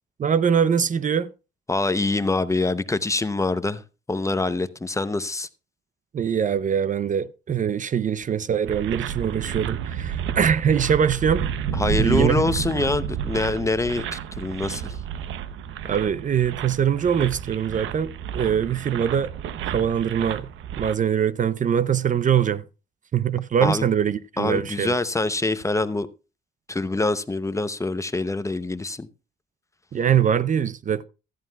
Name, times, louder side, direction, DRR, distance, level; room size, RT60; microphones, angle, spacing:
voice 1, 0.2-1.3 6.1-11.5 12.0-12.5 15.8-19.3 19.7-20.5 20.8-22.6 23.1-25.0 29.9-31.0, right 8 dB, 40° right, 0.5 m, -23 dB
voice 2, 1.7-3.8 4.1-5.5 11.7-14.9 23.6-23.8 24.4-26.1 26.7-29.1, left 2 dB, 15° left, 0.7 m, -25 dB
sound 1, 8.7-20.9, right 9 dB, 80° right, 0.8 m, -31 dB
15.0 x 13.0 x 2.3 m
cardioid pair, 90°, 20 cm